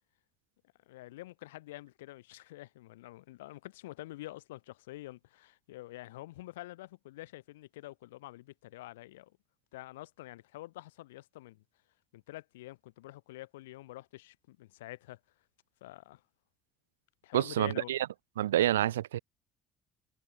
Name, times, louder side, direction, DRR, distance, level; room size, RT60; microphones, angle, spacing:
voice 1, 0.9-9.3 9.7-11.6 12.1-15.2 15.8-16.2 17.2-17.9, left 17 dB, 80° left, 5.5 m, -47 dB
voice 2, 17.3-18.1 18.4-19.2, right 12 dB, 80° right, 0.5 m, -28 dB
hypercardioid pair, 55°, 0 cm